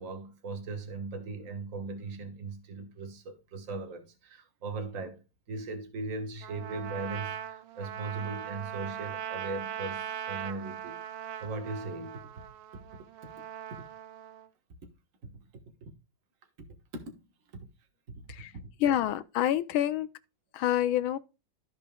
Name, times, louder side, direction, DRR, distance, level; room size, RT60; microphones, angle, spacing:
voice 1, 0.0-5.2 5.5-11.0 11.4-12.2 12.7-12.8 13.2-13.3 13.7-13.9 15.2-15.3 15.8-15.9 16.6-17.2 17.5-17.7 18.1-18.7, right 3 dB, 45° right, 1.5 m, -39 dB
Trumpet, 6.4-14.5, right 10 dB, 75° right, 1.3 m, -40 dB
voice 2, 18.8-20.1 20.5-21.2, left 11 dB, 80° left, 1.4 m, -27 dB
14.0 x 5.2 x 2.2 m
omnidirectional pair, 2.3 m